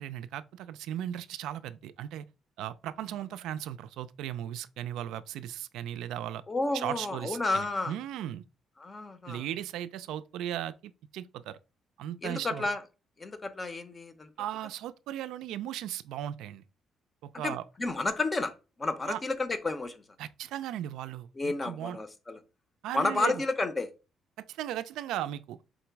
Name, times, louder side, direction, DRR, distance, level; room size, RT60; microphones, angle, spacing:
voice 1, 0.0-2.2 2.6-6.4 6.7-8.4 9.3-11.6 12.0-12.7 14.4-16.6 17.2-17.6 19.1-19.2 20.2-22.0 22.8-23.4 24.4-25.6, right 11 dB, 90° right, 0.3 m, -37 dB
voice 2, 6.5-7.9 8.8-9.4 12.2-12.8 13.2-14.3 17.4-18.5 18.8-20.0 21.4-22.4 22.9-23.9, left 3 dB, 20° left, 0.5 m, -31 dB
3.9 x 3.0 x 4.5 m
cardioid pair, 135°, 0 cm